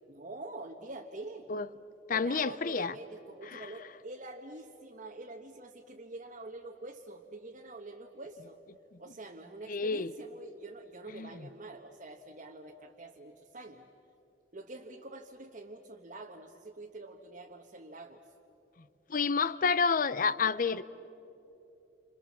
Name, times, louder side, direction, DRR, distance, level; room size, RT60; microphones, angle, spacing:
voice 1, 0.1-1.5 2.1-8.6 9.0-13.9 14.5-18.2 19.6-19.7, right 2 dB, 45° right, 1.2 m, -46 dB
voice 2, 2.1-2.9 3.5-3.6 9.7-10.1 11.1-11.3 19.1-20.8, left 5 dB, 50° left, 0.7 m, -29 dB
29.0 x 26.5 x 7.4 m
head